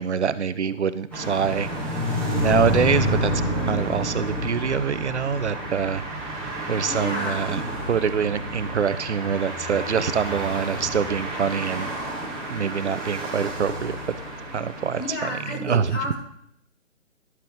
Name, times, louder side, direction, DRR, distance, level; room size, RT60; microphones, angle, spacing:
voice 1, 0.0-1.7 2.4-3.3 3.6-6.0 6.7-7.6 7.9-11.9 12.5-14.0 14.5-15.9, right 6 dB, 60° right, 14 dB, 0.7 m, -25 dB
sound 1, 1.1-15.1, equal, 5° left, 1.5 m, -29 dB
voice 2, 6.9-7.5 15.0-16.1, left 2 dB, 70° left, -3 dB, 4.2 m, -31 dB
11.0 x 7.5 x 3.5 m, 0.70 s
figure-of-eight pair, 145°, 39 cm